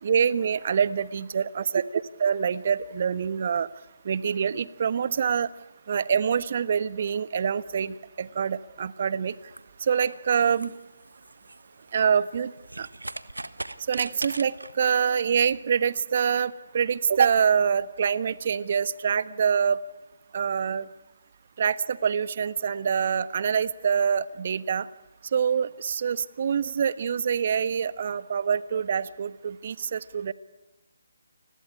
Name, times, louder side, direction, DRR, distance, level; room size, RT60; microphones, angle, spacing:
voice 1, 0.0-1.8 2.2-3.7 4.0-5.5 5.9-9.3 9.8-10.7 11.9-12.5 12.8-12.9 13.9-19.8 20.3-20.9 21.6-24.9 25.3-30.3, right 7 dB, 45° right, 16 dB, 1.2 m, -25 dB
sound 1, 9.3-15.1, right 2 dB, 90° right, 1.5 m, -40 dB
29.5 x 21.0 x 9.8 m, 1.0 s
figure-of-eight pair, 150°, 0 cm